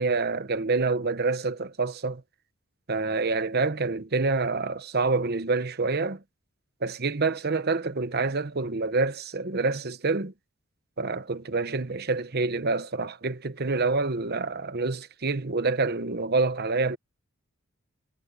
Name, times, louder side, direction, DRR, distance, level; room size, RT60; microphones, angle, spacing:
voice 1, 0.0-2.2 2.9-6.2 6.8-10.3 11.0-17.0, right 3 dB, 50° right, 1.0 m, -27 dB
head